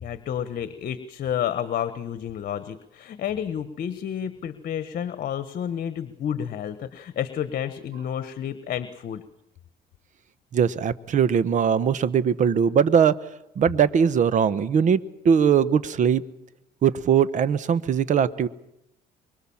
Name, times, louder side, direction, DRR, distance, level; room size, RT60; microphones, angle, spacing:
voice 1, 0.0-9.2, left 9 dB, 55° left, 12 dB, 1.4 m, -30 dB
voice 2, 10.5-13.1 13.6-16.2 16.8-18.5, right 7 dB, 45° right, 16 dB, 1.1 m, -20 dB
24.5 x 23.5 x 7.3 m, 0.84 s
cardioid pair, 110°, 17 cm